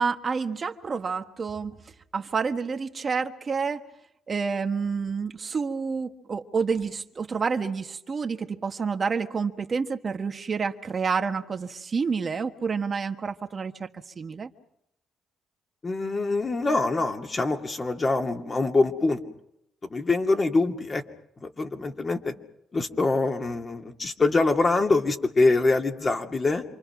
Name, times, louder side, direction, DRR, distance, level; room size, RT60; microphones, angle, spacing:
voice 1, 0.0-1.8 2.1-3.8 4.3-13.9 14.2-14.5, right 5 dB, 40° right, 7 dB, 1.4 m, -29 dB
voice 2, 15.8-19.2 19.9-21.0 21.4-22.3 22.7-26.6, left 3 dB, 30° left, 4 dB, 2.5 m, -24 dB
27.5 x 24.5 x 6.0 m, 0.77 s
cardioid pair, 90°, 0 cm